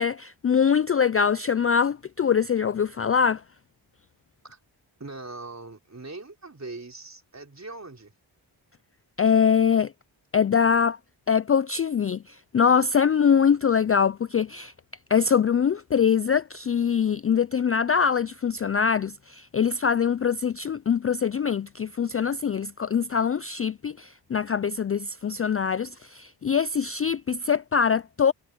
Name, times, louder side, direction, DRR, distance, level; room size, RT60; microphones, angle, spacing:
voice 1, 0.0-3.4 9.2-9.9 10.3-11.0 11.3-14.7 15.1-28.3, left 7 dB, 30° left, 0.4 m, -23 dB
voice 2, 5.0-8.1, right 3 dB, 35° right, 4.3 m, -41 dB
cardioid pair, 50°, 48 cm